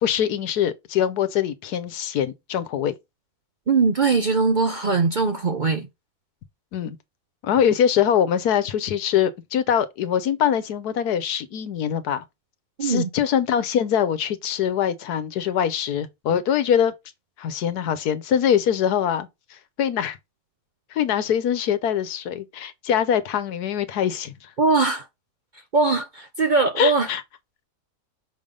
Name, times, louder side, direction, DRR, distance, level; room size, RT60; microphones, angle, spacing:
voice 1, 0.0-2.9 6.7-7.0 7.4-12.2 12.8-16.9 17.4-19.3 19.8-20.2 20.9-24.5 26.8-27.2, left 9 dB, 85° left, 1.4 m, -23 dB
voice 2, 3.7-5.9 12.8-13.1 24.6-25.1 25.7-27.1, right 4 dB, 45° right, 0.6 m, -21 dB
6.1 x 3.5 x 5.1 m
omnidirectional pair, 1.6 m